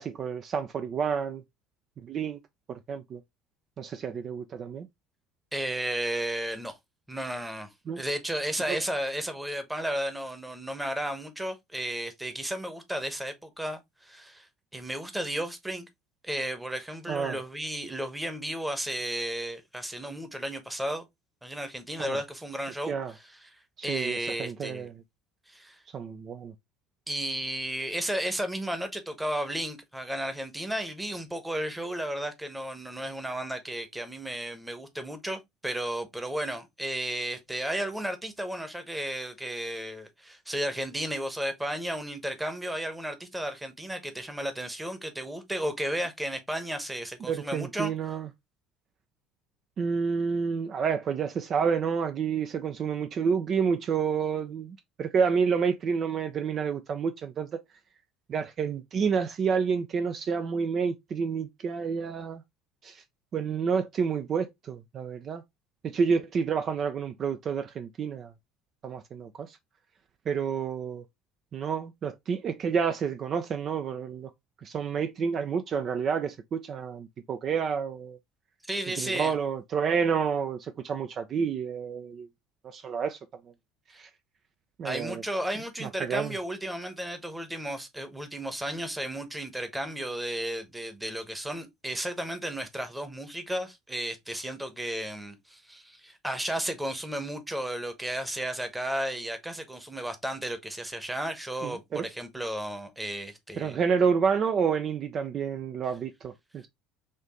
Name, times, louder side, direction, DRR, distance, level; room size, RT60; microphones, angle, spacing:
voice 1, 0.0-1.4 2.0-2.4 2.7-3.2 3.8-4.9 7.9-8.0 8.7-8.8 17.1-17.4 22.0-22.2 22.9-23.1 23.9-24.9 25.9-26.5 47.2-48.3 49.8-57.6 58.3-62.4 62.8-63.0 63.3-65.4 65.8-68.3 68.8-69.6 70.3-71.0 71.5-74.3 74.6-78.2 79.0-82.3 82.6-83.2 84.0-84.1 84.8-85.2 85.8-86.3 101.6-102.1 103.6-106.7, right 6 dB, 45° right, 0.4 m, -29 dB
voice 2, 5.5-6.8 7.1-7.7 7.9-14.5 14.7-15.9 16.2-21.0 21.4-23.5 23.8-24.9 25.5-25.8 27.1-47.9 78.7-79.3 83.9-84.0 84.8-103.8, right 1 dB, 10° right, 1.0 m, -33 dB
4.3 x 2.6 x 2.9 m
hypercardioid pair, 65°, 0 cm